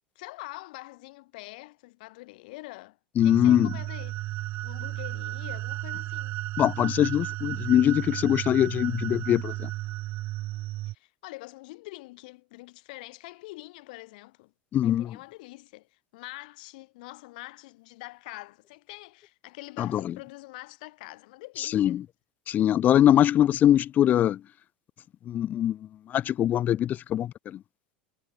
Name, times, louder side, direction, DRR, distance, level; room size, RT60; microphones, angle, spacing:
voice 1, 0.0-3.0 3.2-4.2 4.6-6.4 10.9-14.5 14.8-22.0, left 22 dB, 55° left, 2.1 m, -45 dB
voice 2, 3.2-3.7 6.6-9.7 14.7-15.1 19.8-20.1 21.6-22.0 22.5-24.4 25.3-25.8 26.1-27.6, left 11 dB, 30° left, 0.5 m, -22 dB
sound 1, 3.2-10.9, right 17 dB, 40° right, 0.8 m, -34 dB
figure-of-eight pair, 80°, 5 cm